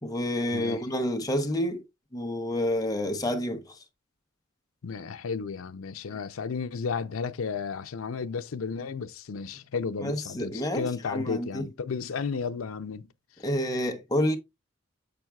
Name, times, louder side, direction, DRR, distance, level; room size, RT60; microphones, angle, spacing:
voice 1, 0.0-1.8 2.1-3.8 6.1-6.2 10.0-11.6 13.4-14.4, left 1 dB, 20° left, 0.9 m, -29 dB
voice 2, 4.8-13.1, left 5 dB, 90° left, 0.5 m, -33 dB
7.1 x 6.0 x 2.3 m
head